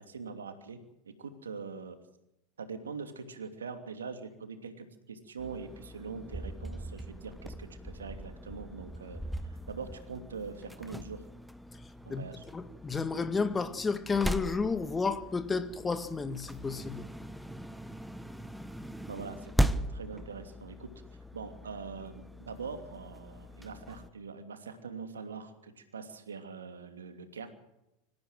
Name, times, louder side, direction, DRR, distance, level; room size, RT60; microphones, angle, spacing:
voice 1, 0.0-2.0 2.6-9.2 9.5-11.2 12.1-12.5 19.1-19.5 19.9-20.9 21.3-27.5, right 5 dB, 85° right, 2.8 m, -43 dB
sound 1, 5.4-24.1, right 1 dB, ahead, 1.2 m, -39 dB
voice 2, 12.5-17.0, left 4 dB, 20° left, 1.9 m, -31 dB
26.0 x 15.0 x 7.6 m
hypercardioid pair, 85°, 0 cm